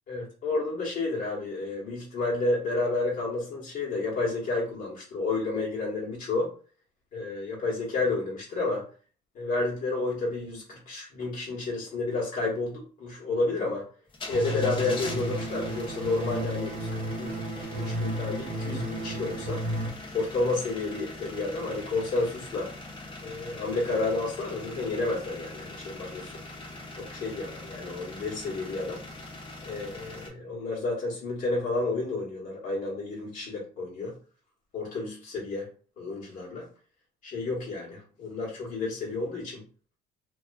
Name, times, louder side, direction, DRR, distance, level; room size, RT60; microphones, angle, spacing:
voice 1, 0.1-6.5 7.1-8.9 9.3-13.9 14.3-19.6 20.1-22.7 23.2-26.4 27.0-29.0 29.6-34.1 34.7-35.7 36.0-36.7 37.2-39.6, left 3 dB, 55° left, -4 dB, 1.1 m, -31 dB
sound 1, 14.1-30.3, left 2 dB, 30° left, 0.7 m, -42 dB
sound 2, 14.3-19.9, right 1 dB, 55° right, 0.8 m, -33 dB
2.3 x 2.3 x 2.3 m, 0.39 s
cardioid pair, 110°, 17 cm